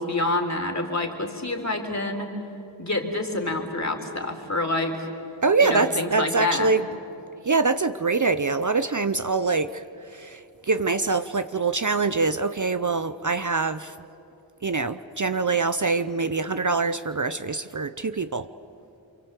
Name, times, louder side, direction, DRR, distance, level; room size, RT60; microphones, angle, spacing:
voice 1, 0.0-2.3 2.8-5.1 5.6-6.7, left 2 dB, 35° left, 3 dB, 3.8 m, -27 dB
voice 2, 5.4-6.9 7.4-14.0 14.6-18.5, right 4 dB, 40° right, 11 dB, 0.7 m, -24 dB
29.0 x 24.5 x 8.2 m, 2.8 s
wide cardioid pair, 55°, 47 cm